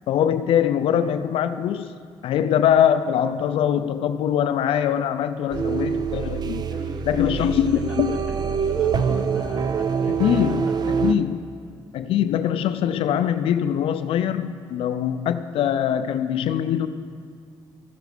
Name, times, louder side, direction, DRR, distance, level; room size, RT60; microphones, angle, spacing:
voice 1, 0.1-1.9 2.2-6.6 7.1-8.1 10.2-11.4 11.9-16.9, left 9 dB, 80° left, 0.4 m, -22 dB
voice 2, 5.5-5.9 6.6-11.2, equal, 10° right, 2.6 m, -42 dB
sound 1, 5.5-11.1, right 6 dB, 45° right, 0.5 m, -25 dB
14.5 x 6.6 x 4.9 m
cardioid pair, 80°, 9 cm